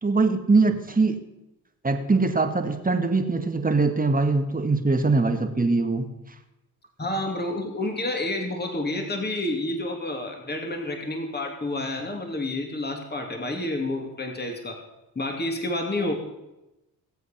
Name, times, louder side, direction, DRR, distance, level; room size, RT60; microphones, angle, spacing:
voice 1, 0.0-1.2 1.8-6.1, right 3 dB, 20° right, 6 dB, 1.9 m, -22 dB
voice 2, 7.0-14.8 15.1-16.1, left 1 dB, 20° left, 3 dB, 2.7 m, -29 dB
18.0 x 8.0 x 5.9 m, 0.98 s
hypercardioid pair, 50°, 45 cm